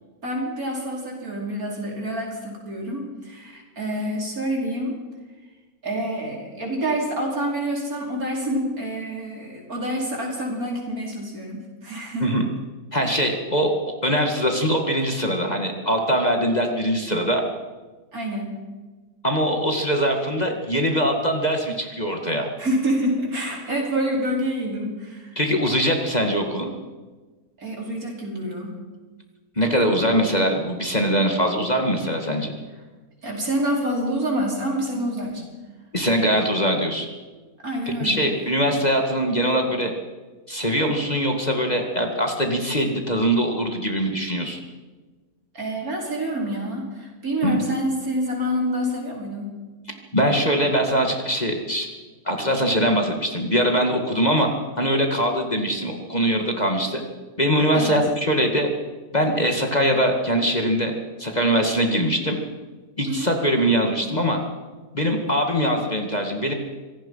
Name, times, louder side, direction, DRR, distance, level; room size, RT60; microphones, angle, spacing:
voice 1, 0.2-5.0 5.8-12.4 18.1-18.8 22.6-25.4 27.6-28.8 33.2-35.4 37.6-38.4 45.5-49.6 57.7-58.0 63.1-63.3, right 1 dB, 60° right, -1 dB, 5.3 m, -27 dB
voice 2, 12.9-17.4 19.2-22.5 25.4-26.7 29.6-32.5 35.9-37.1 37.9-39.9 40.5-44.6 47.4-47.6 50.1-51.9 52.3-54.5 54.8-57.0 57.4-58.7 59.1-60.9 61.2-62.4 63.0-64.4 64.9-66.5, equal, 25° left, 3 dB, 2.2 m, -22 dB
25.0 x 18.0 x 5.7 m, 1.3 s
omnidirectional pair, 1.7 m